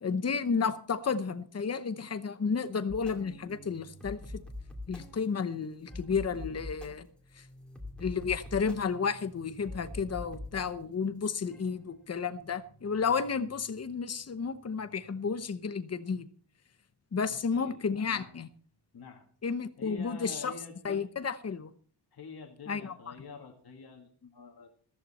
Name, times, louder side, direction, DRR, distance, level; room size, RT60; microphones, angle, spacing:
voice 1, 0.0-4.4 4.9-7.1 7.4-7.5 8.0-16.3 17.1-18.5 19.4-20.5 20.8-21.7 22.7-22.9, left 5 dB, 40° left, 0.9 m, -32 dB
sound 1, 2.9-15.5, left 2 dB, ahead, 2.5 m, -46 dB
voice 2, 17.3-17.8 18.1-18.3 18.9-19.3 19.8-21.0 22.1-24.7, left 4 dB, 60° left, 2.1 m, -47 dB
14.5 x 14.0 x 4.2 m
wide cardioid pair, 160°, 41 cm